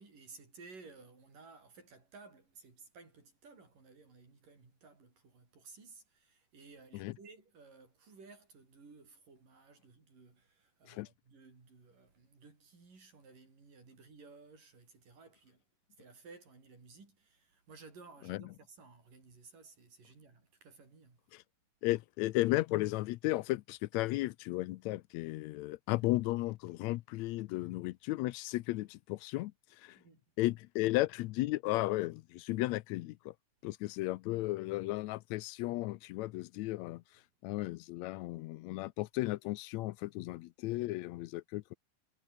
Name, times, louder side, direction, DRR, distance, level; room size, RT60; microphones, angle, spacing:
voice 1, 0.0-15.6 16.0-21.2 30.0-30.2 36.6-36.7, right 4 dB, 80° right, 8.7 m, -57 dB
voice 2, 21.8-29.5 29.8-30.0 30.4-33.3 33.6-37.0 37.4-41.7, left 18 dB, 85° left, 1.6 m, -34 dB
omnidirectional pair, 3.8 m